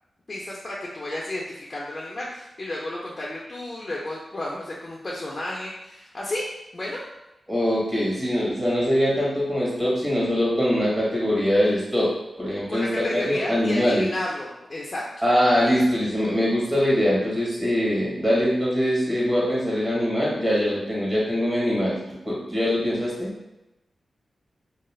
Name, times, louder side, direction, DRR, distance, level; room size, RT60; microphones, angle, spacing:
voice 1, 0.3-6.5 6.7-7.0 12.7-15.0, left 1 dB, 40° left, -4 dB, 0.5 m, -32 dB
voice 2, 7.5-12.1 12.4-14.1 15.2-22.0 22.2-23.3, equal, 30° right, -6 dB, 1.0 m, -22 dB
2.3 x 2.0 x 3.1 m, 0.95 s
cardioid pair, 55°, 0 cm